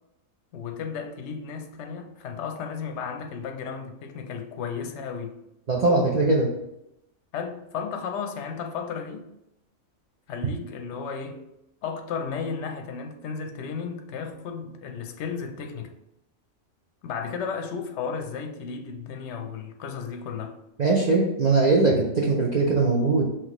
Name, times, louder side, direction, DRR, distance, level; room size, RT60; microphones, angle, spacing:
voice 1, 0.5-5.4 7.3-9.3 10.3-11.4 11.8-15.9 17.0-20.6, left 6 dB, 65° left, 0.8 m, -34 dB
voice 2, 5.7-6.5 20.8-23.2, right 3 dB, 45° right, 0.6 m, -21 dB
5.9 x 3.0 x 3.0 m
omnidirectional pair, 1.4 m